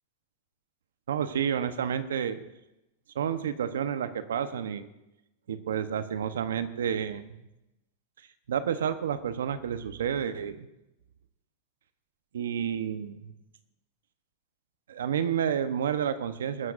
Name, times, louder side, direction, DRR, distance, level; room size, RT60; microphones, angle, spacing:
voice 1, 1.1-2.4 3.1-4.9 5.5-7.4 8.5-10.7 12.3-13.3 14.9-16.7, right 8 dB, 80° right, 11 dB, 1.0 m, -30 dB
20.5 x 13.5 x 2.6 m, 0.91 s
hypercardioid pair, 100°, 0 cm